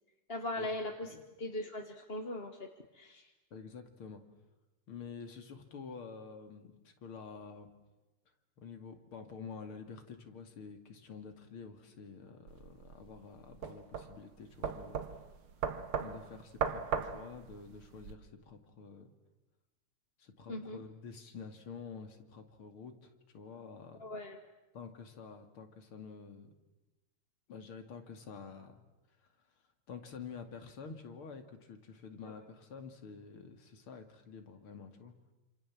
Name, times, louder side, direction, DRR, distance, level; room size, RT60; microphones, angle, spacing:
voice 1, 0.3-2.7 2.9-3.3 20.5-20.8 24.0-24.4 32.2-32.3, left 1 dB, 30° left, 3 dB, 1.6 m, -40 dB
voice 2, 3.5-4.2 4.9-7.7 8.6-15.2 16.0-19.1 20.2-24.0 24.7-26.5 27.5-28.8 29.2-29.3 29.9-35.1, left 5 dB, 85° left, 7 dB, 3.2 m, -49 dB
sound 1, 12.5-18.1, right 7 dB, 80° right, 2.3 m, -38 dB
27.5 x 27.5 x 7.5 m, 1.1 s
omnidirectional pair, 2.3 m